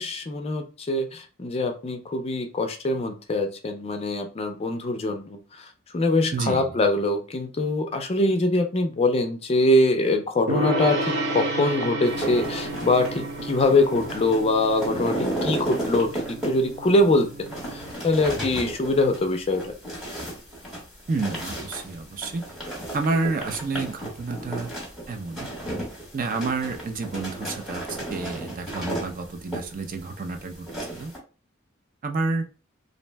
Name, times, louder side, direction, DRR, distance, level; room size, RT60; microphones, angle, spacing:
voice 1, 0.0-5.7 5.9-17.3 17.7-19.7, left 2 dB, 30° left, 5 dB, 0.4 m, -23 dB
voice 2, 6.3-6.7 21.1-22.5 22.9-24.7 25.1-25.5 26.1-31.1 32.0-32.5, right 3 dB, 45° right, 5 dB, 0.4 m, -29 dB
Gong, 10.5-17.9, right 1 dB, 60° right, 0.8 m, -31 dB
sound 1, 12.1-31.2, right 1 dB, ahead, 1.0 m, -34 dB
2.6 x 2.0 x 3.2 m, 0.34 s
head